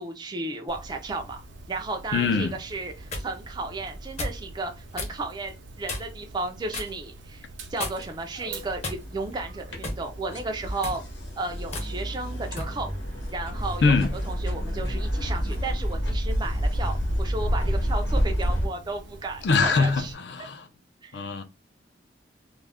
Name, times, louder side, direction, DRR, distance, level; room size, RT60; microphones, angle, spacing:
voice 1, 0.0-1.4 1.7-11.0 11.4-12.9 13.3-13.9 14.2-20.1 21.0-21.3, right 3 dB, 25° right, 0.3 m, -34 dB
Dog, 0.7-20.1, right 2 dB, 75° right, 0.6 m, -45 dB
voice 2, 2.1-2.5 13.8-14.1 19.4-20.7 21.1-21.4, left 4 dB, 65° left, 0.4 m, -23 dB
sound 1, 2.7-3.3 4.2-4.4 4.9-5.2 5.9-6.2 6.7-7.0 7.8-8.2 8.8-9.3 9.8-10.1 10.7-11.0 11.7-11.9 12.6-12.8, left 2 dB, 35° left, 0.7 m, -34 dB
sound 2, 8.5-18.7, equal, 80° left, 0.9 m, -29 dB
2.4 x 2.1 x 3.3 m
head